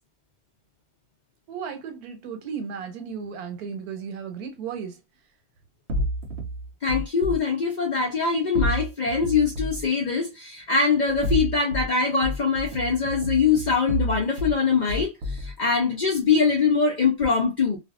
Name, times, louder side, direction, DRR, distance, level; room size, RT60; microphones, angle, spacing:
voice 1, 1.5-5.0, right 6 dB, 85° right, 1.2 m, -35 dB
sound 1, 5.9-7.4 8.5-9.9 11.0-11.9 12.2-14.6 14.9-15.5, equal, 65° right, 0.6 m, -29 dB
voice 2, 6.8-17.8, left 5 dB, 60° left, 0.4 m, -23 dB
2.5 x 2.4 x 2.4 m
omnidirectional pair, 1.5 m